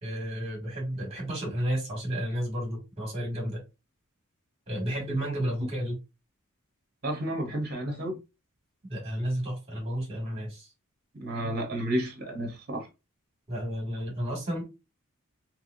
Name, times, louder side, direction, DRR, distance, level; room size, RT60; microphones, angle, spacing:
voice 1, 0.0-3.6 4.7-6.0 8.9-10.7 13.5-14.6, equal, 30° right, 1.8 m, -32 dB
voice 2, 7.0-8.2 11.1-12.9, right 1 dB, 45° right, 1.0 m, -31 dB
3.4 x 2.9 x 2.6 m
head